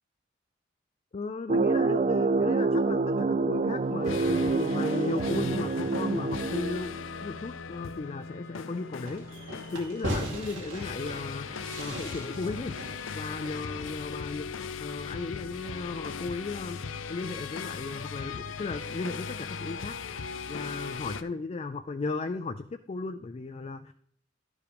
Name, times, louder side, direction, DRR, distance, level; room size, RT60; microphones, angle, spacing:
voice 1, 1.1-6.9 7.2-12.7 13.1-14.5 14.8-16.8 17.1-23.9, left 3 dB, 35° left, 8 dB, 0.3 m, -36 dB
sound 1, 1.5-7.2, right 3 dB, 35° right, 0.4 m, -27 dB
sound 2, 3.8-21.2, left 5 dB, 85° left, 0.5 m, -39 dB
Fireworks, 9.0-14.3, right 1 dB, 75° right, 2.4 m, -39 dB
12.0 x 4.8 x 5.1 m, 0.62 s
head